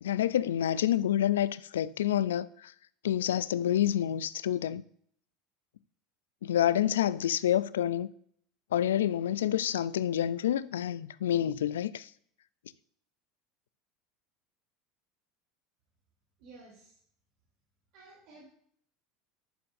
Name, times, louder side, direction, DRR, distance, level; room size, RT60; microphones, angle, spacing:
voice 1, 0.0-2.7 3.0-4.8 6.4-8.1 8.7-12.1, left 11 dB, 90° left, 0.3 m, -28 dB
voice 2, 16.4-17.0 17.9-18.4, right 3 dB, 65° right, 2.9 m, -53 dB
11.0 x 7.0 x 2.6 m
hypercardioid pair, 95°, 0 cm